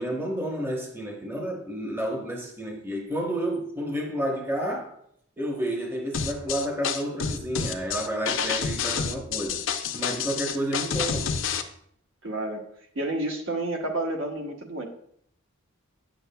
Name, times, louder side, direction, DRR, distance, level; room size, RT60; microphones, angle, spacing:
voice 1, 0.0-5.0 5.4-9.6 9.9-11.4, right 1 dB, 10° right, 0.9 m, -30 dB
sound 1, 6.1-11.6, left 6 dB, 65° left, 0.6 m, -28 dB
voice 2, 12.2-12.6 12.9-14.8, right 2 dB, 65° right, 1.0 m, -30 dB
9.0 x 7.0 x 2.2 m
head